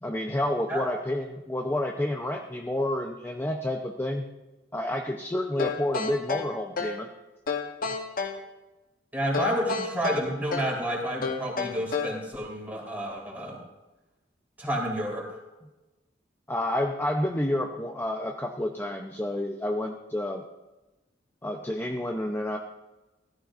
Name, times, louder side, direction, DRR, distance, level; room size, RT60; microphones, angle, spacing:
voice 1, 0.0-4.2 4.7-7.1 16.5-20.4 21.4-22.6, left 1 dB, 10° left, 2 dB, 0.7 m, -29 dB
sound 1, 5.6-7.1 7.5-8.4 9.3-10.8 11.2-12.2, left 5 dB, 50° left, 1.0 m, -31 dB
voice 2, 9.1-13.6 14.6-15.4, equal, 10° right, -3 dB, 3.8 m, -30 dB
17.0 x 13.5 x 2.6 m, 1.1 s
head